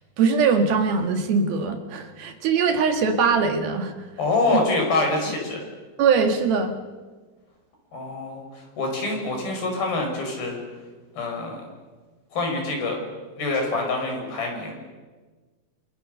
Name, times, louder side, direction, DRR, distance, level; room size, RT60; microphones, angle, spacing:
voice 1, 0.2-3.9 4.5-4.6 6.0-6.7, right 5 dB, 80° right, 5 dB, 3.8 m, -21 dB
voice 2, 4.2-5.6 7.9-10.6 11.2-11.6 12.3-13.0 13.4-14.8, left 3 dB, 75° left, 2 dB, 7.8 m, -25 dB
28.0 x 27.5 x 6.7 m, 1.4 s
omnidirectional pair, 4.3 m